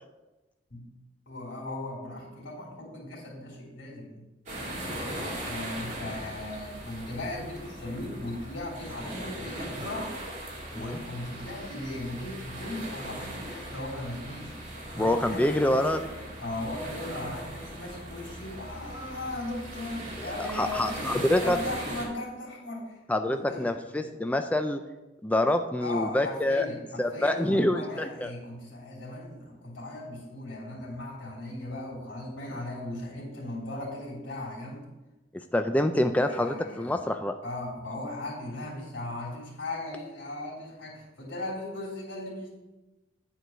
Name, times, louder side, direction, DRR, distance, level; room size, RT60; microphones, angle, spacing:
voice 1, 1.3-4.2 5.4-10.2 10.7-14.5 14.9-16.0 16.4-21.0 21.4-23.0 23.3-24.3 25.8-34.8 36.2-37.0 37.4-42.5, left 1 dB, 80° left, -4 dB, 3.3 m, -37 dB
sound 1, 4.5-22.1, right 1 dB, 40° right, 2.3 m, -39 dB
voice 2, 14.9-16.0 20.2-21.6 23.1-24.8 25.2-26.7 27.0-28.3 35.5-37.4, left 1 dB, 10° left, 6 dB, 0.3 m, -26 dB
9.3 x 4.6 x 6.2 m, 1.1 s
head